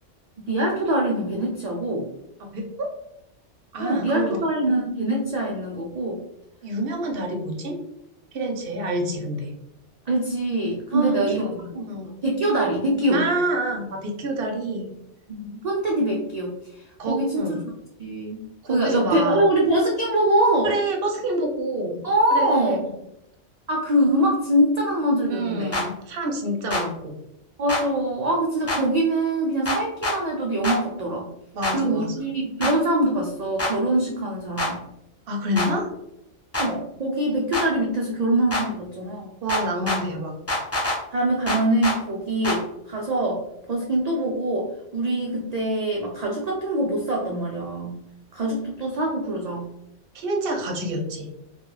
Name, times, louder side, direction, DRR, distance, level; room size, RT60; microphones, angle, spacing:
voice 1, 0.5-2.1 3.8-6.2 10.1-11.4 11.7-11.9 12.2-13.2 15.3-17.5 18.0-20.7 22.0-22.8 23.7-25.8 27.6-31.3 31.7-34.8 36.6-39.3 41.1-43.4 43.7-48.0 48.3-49.7, right 1 dB, 80° right, -2 dB, 0.3 m, -24 dB
voice 2, 2.5-2.9 3.7-4.4 6.6-7.8 8.3-9.5 10.9-12.1 13.1-14.9 17.0-17.6 18.6-19.4 20.6-22.0 22.3-22.8 25.3-27.1 31.5-32.1 35.3-35.8 39.4-40.3 50.1-51.3, right 1 dB, 60° right, 2 dB, 0.7 m, -27 dB
sound 1, 25.7-25.9 26.7-26.8 27.7-27.8 28.7-28.8 29.7-30.2 30.6-30.8 31.6-31.8 32.6-32.7 33.6-33.7 34.6-34.7 35.6-35.7 36.5-36.7 37.5-37.7 38.5-38.6 39.5-40.0 40.5-41.0 41.5-42.0 42.4-42.6, left 1 dB, 25° left, 0.3 m, -25 dB
2.4 x 2.3 x 3.0 m, 0.81 s
omnidirectional pair, 1.3 m